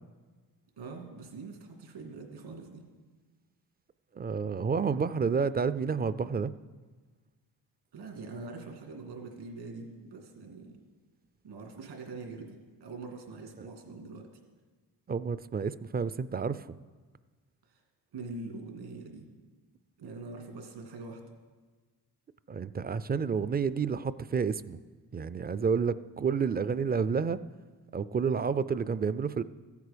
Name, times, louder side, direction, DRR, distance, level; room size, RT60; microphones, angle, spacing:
voice 1, 0.8-2.8 7.9-10.8 11.4-14.3 17.7-17.8 18.1-19.3 20.0-21.2, right 3 dB, 80° right, 2 dB, 2.4 m, -43 dB
voice 2, 4.2-6.5 13.6-13.7 15.1-16.7 22.5-24.8 25.1-27.4 27.9-29.4, right 6 dB, 25° right, 16 dB, 0.3 m, -30 dB
14.0 x 8.2 x 5.1 m, 1.4 s
cardioid pair, 75°, 42 cm